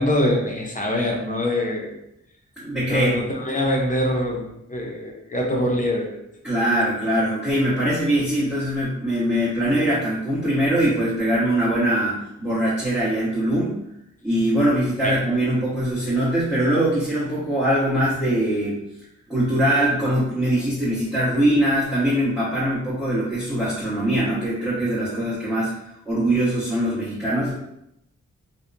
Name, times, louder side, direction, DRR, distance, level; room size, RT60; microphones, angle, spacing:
voice 1, 0.0-1.9 2.9-6.2 15.0-15.1, left 1 dB, 25° left, -1 dB, 0.6 m, -24 dB
voice 2, 2.6-3.2 6.4-13.8 14.2-18.8 19.3-25.8 26.1-27.5, right 1 dB, 5° right, -12 dB, 1.1 m, -22 dB
2.7 x 2.1 x 2.5 m, 0.80 s
cardioid pair, 60°, 30 cm